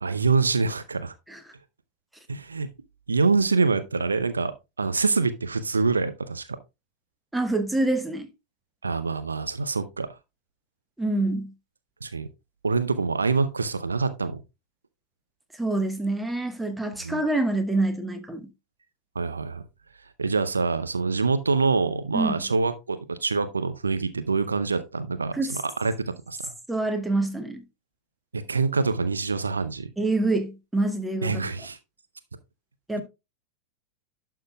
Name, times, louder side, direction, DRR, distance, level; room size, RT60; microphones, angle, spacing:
voice 1, 0.0-1.1 2.3-2.7 3.1-4.5 4.8-6.5 8.8-10.1 12.0-12.3 12.6-14.4 17.0-17.2 19.2-19.6 20.2-25.9 26.3-26.5 28.3-29.9 31.2-31.8, right 4 dB, 75° right, 0.6 m, -25 dB
voice 2, 7.3-8.3 11.0-11.5 15.6-18.5 22.1-22.4 25.3-25.6 26.7-27.6 30.0-31.4 32.9-33.0, right 2 dB, 5° right, 1.2 m, -26 dB
11.5 x 5.7 x 2.2 m
figure-of-eight pair, 90°, 0 cm